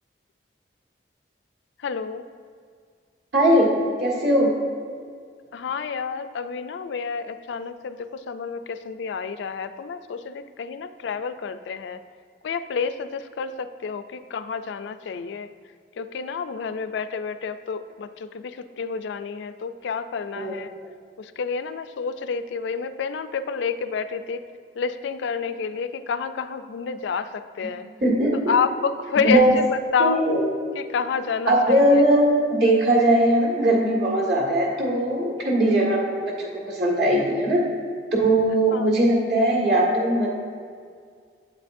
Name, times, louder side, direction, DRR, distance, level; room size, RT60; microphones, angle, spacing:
voice 1, 1.8-2.2 5.5-12.0 12.4-15.5 16.0-20.7 21.2-24.4 24.8-27.9 28.5-29.4 29.9-30.2 30.7-31.6 31.9-32.0 38.7-38.9, left 5 dB, 75° left, 11 dB, 0.3 m, -29 dB
voice 2, 3.3-3.7 4.0-4.5 20.4-20.5 28.0-28.5 29.2-29.6 30.0-30.5 31.5-37.6 38.2-40.3, right 1 dB, 65° right, -2 dB, 1.8 m, -20 dB
8.2 x 7.6 x 2.6 m, 2.1 s
head